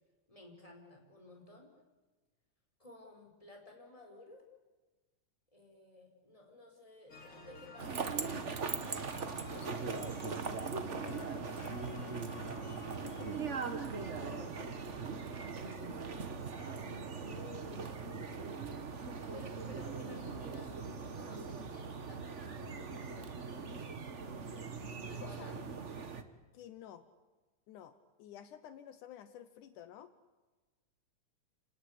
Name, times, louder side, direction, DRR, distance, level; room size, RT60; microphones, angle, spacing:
voice 1, 0.3-1.7 2.8-4.4 5.5-8.5 13.8-17.2 19.3-20.8 21.1-24.1 25.0-25.7, left 2 dB, 10° left, 1 dB, 5.1 m, -55 dB
sound 1, 7.1-15.6, left 3 dB, 45° left, 3.9 m, -53 dB
sound 2, 7.8-26.2, right 5 dB, 85° right, 0.6 m, -40 dB
voice 2, 9.5-12.6 13.0-13.5 17.3-18.6 19.1-19.3 25.2-25.6 26.5-27.0 27.7-30.1, left 10 dB, 75° left, 11 dB, 2.5 m, -52 dB
30.0 x 19.0 x 8.3 m, 1.2 s
omnidirectional pair, 3.6 m